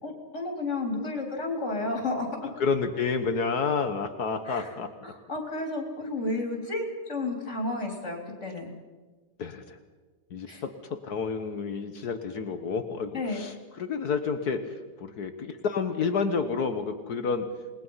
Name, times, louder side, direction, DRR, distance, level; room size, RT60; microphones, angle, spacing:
voice 1, 0.0-2.5 4.5-4.8 5.0-8.7 10.5-10.6 13.1-13.4, left 2 dB, 40° left, 2 dB, 4.2 m, -32 dB
voice 2, 2.6-4.9 9.4-9.8 10.3-17.5, left 5 dB, 65° left, 8 dB, 1.7 m, -30 dB
28.0 x 20.5 x 5.7 m, 1.3 s
omnidirectional pair, 1.8 m